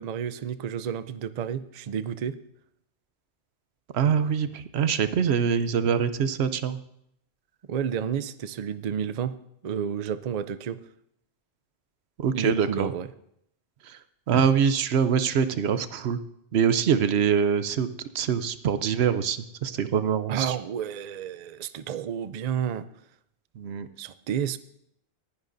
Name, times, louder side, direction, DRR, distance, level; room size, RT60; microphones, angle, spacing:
voice 1, 0.0-2.4 7.7-9.4 9.6-10.8 12.3-13.1 20.3-22.9 24.0-24.6, right 8 dB, 50° right, 13 dB, 0.5 m, -31 dB
voice 2, 3.9-6.8 12.2-12.9 13.9-14.0 14.3-16.2 16.5-17.9 18.1-20.6 23.6-23.9, right 7 dB, 75° right, 12 dB, 0.9 m, -24 dB
19.5 x 10.5 x 2.6 m, 0.74 s
omnidirectional pair, 1.1 m